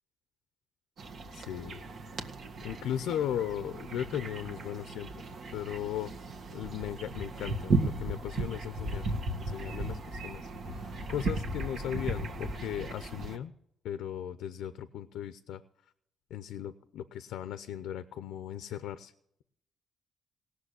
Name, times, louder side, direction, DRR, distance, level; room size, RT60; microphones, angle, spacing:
sound 1, 1.0-13.4, right 3 dB, 60° right, 1.6 m, -36 dB
voice 1, 1.3-1.8 2.6-5.1 5.5-6.1 6.5-10.5 10.7-13.5 13.8-15.6 16.3-19.1, left 10 dB, 85° left, 12 dB, 0.6 m, -37 dB
17.5 x 6.6 x 8.2 m, 0.73 s
cardioid pair, 90°, 0 cm